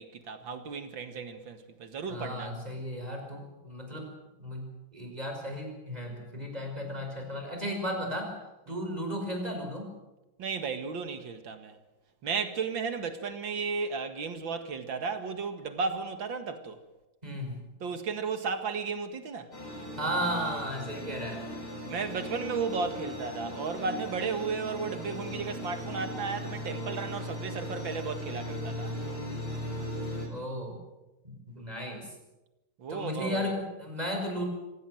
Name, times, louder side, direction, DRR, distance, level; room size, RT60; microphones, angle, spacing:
voice 1, 0.0-2.5 8.7-8.8 10.4-11.8 12.2-16.8 17.8-19.5 21.9-28.9 32.8-33.5, right 5 dB, 70° right, 2.5 m, -34 dB
voice 2, 2.1-4.1 4.4-8.3 8.7-10.0 17.2-17.6 20.0-21.5 30.3-30.8 31.2-32.1 32.9-34.5, equal, 20° right, 5.6 m, -35 dB
sound 1, 19.5-30.3, equal, 50° left, 6.1 m, -38 dB
25.5 x 16.5 x 7.8 m
omnidirectional pair, 2.2 m